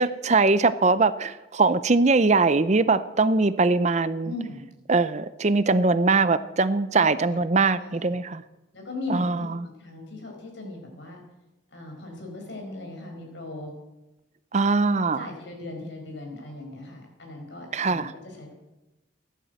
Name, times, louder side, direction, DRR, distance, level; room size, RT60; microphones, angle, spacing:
voice 1, 0.0-4.3 4.9-8.4 9.1-9.4 14.5-15.3 17.7-18.1, right 3 dB, 35° right, 14 dB, 0.6 m, -21 dB
voice 2, 4.2-4.6 6.9-7.4 7.7-8.1 8.7-11.2 11.7-13.7 15.1-18.5, left 2 dB, 65° left, 2 dB, 4.9 m, -38 dB
15.0 x 11.0 x 7.9 m, 1.0 s
head